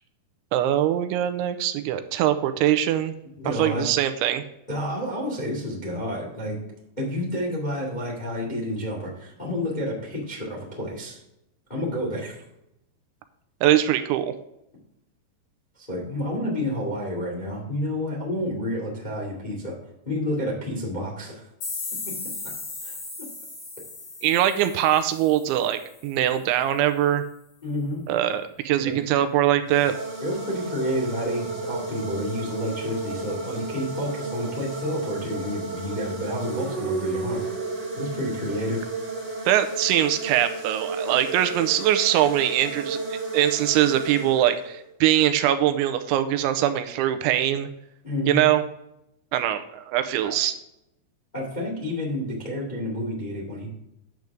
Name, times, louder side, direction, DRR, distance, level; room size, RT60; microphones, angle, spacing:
voice 1, 0.5-3.1 3.5-4.4 13.6-14.3 24.2-27.2 28.1-29.9 39.5-47.7 48.3-48.6 49.3-50.5, right 12 dB, 85° right, 9 dB, 2.9 m, -22 dB
voice 2, 3.4-3.8 4.7-6.6 7.0-11.2 11.7-12.4 15.8-19.7 20.0-21.4 22.0-22.1 22.4-22.5 22.8-22.9 23.2-23.3 27.6-28.0 28.7-29.0 30.2-37.4 38.0-38.9 48.0-48.4 50.2-50.3 51.3-53.7, left 1 dB, 20° left, -2 dB, 1.1 m, -30 dB
sound 1, 21.6-26.3, left 3 dB, 45° left, 4.0 m, -37 dB
sound 2, 29.6-44.9, right 3 dB, 20° right, 2.0 m, -33 dB
10.5 x 7.8 x 3.6 m, 0.83 s
omnidirectional pair, 5.4 m